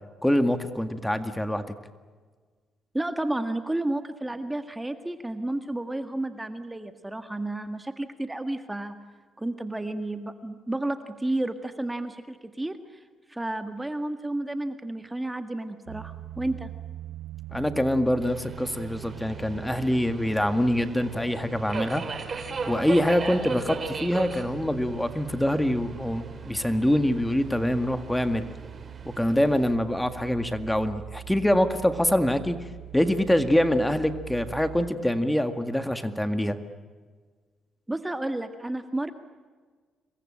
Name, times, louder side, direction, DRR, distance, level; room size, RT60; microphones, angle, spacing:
voice 1, 0.2-1.7 17.5-22.0 22.3-28.5 29.1-32.6 32.9-36.6, left 1 dB, 5° left, 9 dB, 1.9 m, -25 dB
voice 2, 2.9-9.0 9.4-16.7 37.9-39.1, right 1 dB, 10° right, 8 dB, 1.7 m, -31 dB
sound 1, 15.9-34.9, right 11 dB, 80° right, 1.2 m, -43 dB
Subway metro underground, 18.2-29.7, right 4 dB, 40° right, 4.4 m, -38 dB
27.5 x 22.5 x 8.8 m, 1.5 s
cardioid pair, 90°, 0 cm